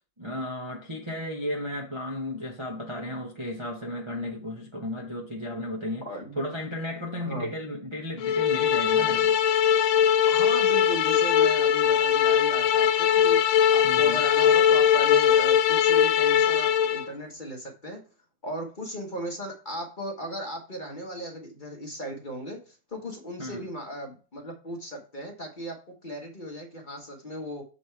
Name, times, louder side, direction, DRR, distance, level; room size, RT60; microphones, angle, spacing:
voice 1, 0.2-6.1 6.4-9.3 13.8-14.2 23.4-23.6, left 1 dB, 25° right, 0.7 m, -34 dB
voice 2, 6.0-6.4 7.2-7.5 10.3-13.4 13.7-18.0 18.4-27.6, equal, 30° left, 1.2 m, -37 dB
sound 1, 8.2-17.1, left 9 dB, 90° left, 1.3 m, -21 dB
7.0 x 4.2 x 4.5 m
omnidirectional pair, 2.0 m